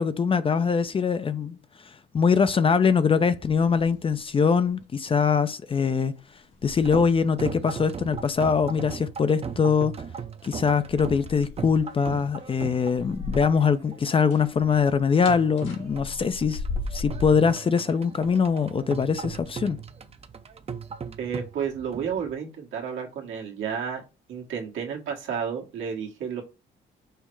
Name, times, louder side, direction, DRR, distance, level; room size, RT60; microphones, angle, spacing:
voice 1, 0.0-1.6 2.1-6.1 6.6-10.0 10.4-16.6 16.9-19.8, left 6 dB, 30° left, 0.3 m, -23 dB
sound 1, 3.4-4.3 4.6-4.8 5.7-5.8 6.4-7.5 7.8-8.7 10.8-13.8 14.0-17.5 18.2-18.6 19.2-19.4, left 3 dB, 90° left, 1.4 m, -38 dB
sound 2, 6.6-22.3, right 6 dB, 30° right, 0.5 m, -38 dB
voice 2, 21.2-24.0 24.3-26.4, right 7 dB, 80° right, 1.4 m, -31 dB
5.5 x 2.0 x 4.6 m
cardioid pair, 90°, 20 cm